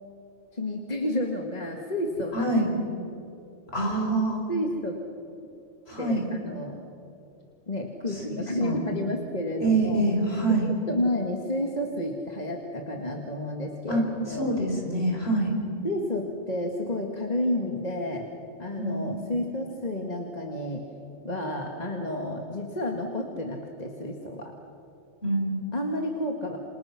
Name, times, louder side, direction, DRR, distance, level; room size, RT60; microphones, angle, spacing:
voice 1, 0.5-2.5 4.5-5.0 6.0-6.8 7.7-10.1 10.5-14.5 15.8-18.3 18.6-20.8 21.2-24.5 25.7-26.6, left 1 dB, 35° left, 2 dB, 2.0 m, -31 dB
voice 2, 2.3-2.7 3.7-4.4 5.9-6.2 8.1-8.8 9.6-10.7 13.9-15.5 18.8-19.1 25.2-25.6, right 2 dB, 60° left, 0 dB, 5.4 m, -26 dB
28.5 x 27.0 x 5.9 m, 2.8 s
omnidirectional pair, 1.2 m